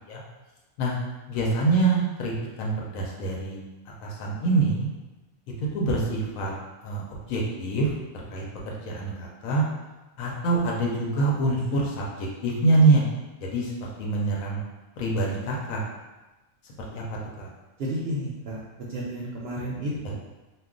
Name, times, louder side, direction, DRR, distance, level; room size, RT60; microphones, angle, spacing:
voice 1, 1.3-2.3 2.6-3.6 4.0-4.9 5.6-6.5 6.8-7.0 7.3-9.7 10.2-13.0 13.4-14.6 15.0-15.8 16.6-17.0 17.4-17.5 20.0-20.1, right 3 dB, 85° left, -2 dB, 1.0 m, -25 dB
voice 2, 17.8-18.6 18.9-20.1, equal, 65° right, -5 dB, 0.6 m, -31 dB
2.3 x 2.3 x 3.6 m, 1.1 s
omnidirectional pair, 1.4 m